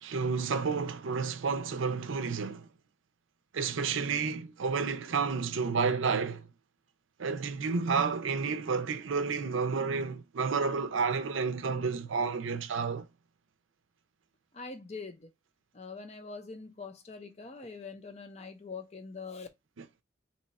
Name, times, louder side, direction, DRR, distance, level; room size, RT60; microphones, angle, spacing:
voice 1, 0.0-2.7 3.5-6.5 7.2-13.1, right 5 dB, 85° right, 0.5 m, -30 dB
voice 2, 14.5-15.3 15.7-19.5, left 4 dB, 35° left, 0.6 m, -43 dB
2.9 x 2.3 x 4.1 m
head